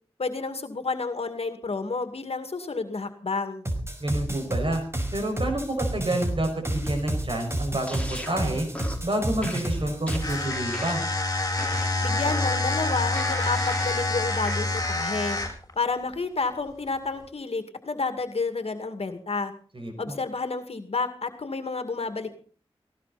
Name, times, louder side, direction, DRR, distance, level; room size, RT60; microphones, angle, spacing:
voice 1, 0.2-3.7 12.0-15.4 15.8-19.5 20.0-22.4, left 4 dB, 75° left, 8 dB, 2.2 m, -30 dB
sound 1, 3.7-10.4, right 1 dB, 25° right, 5.3 m, -30 dB
voice 2, 4.0-4.8 5.1-8.7 9.0-11.0 19.7-20.1, right 1 dB, 55° right, 4 dB, 5.9 m, -28 dB
sound 2, 7.9-8.4 8.7-9.1 9.4-11.1 11.6-12.6 13.1-14.0 14.4-14.6, left 1 dB, 10° left, 4.4 m, -37 dB
sound 3, 10.2-15.7, left 2 dB, 35° left, 7.5 m, -27 dB
19.0 x 18.0 x 4.3 m, 0.42 s
wide cardioid pair, 60°, 10 cm